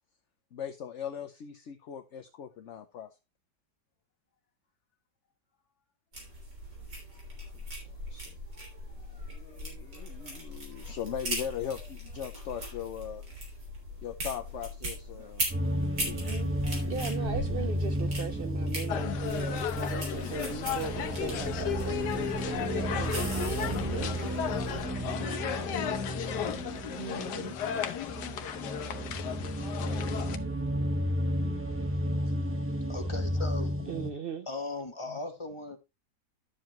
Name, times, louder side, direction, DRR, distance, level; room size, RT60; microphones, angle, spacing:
voice 1, 0.5-3.1 7.8-8.3 9.0-13.2 14.0-15.5 15.9-16.3 25.2-25.8 35.1-35.2, left 9 dB, 55° left, 0.9 m, -40 dB
sound 1, 6.1-24.8, equal, 85° right, 4.0 m, -40 dB
sound 2, 15.5-34.1, equal, 10° right, 1.1 m, -33 dB
voice 2, 16.9-24.1 27.0-27.6 33.9-34.5, right 5 dB, 70° right, 0.5 m, -39 dB
sound 3, 18.9-30.4, left 9 dB, 75° left, 1.4 m, -35 dB
voice 3, 32.9-34.0 34.5-35.8, left 3 dB, 20° left, 1.1 m, -38 dB
11.5 x 7.2 x 3.0 m
omnidirectional pair, 1.8 m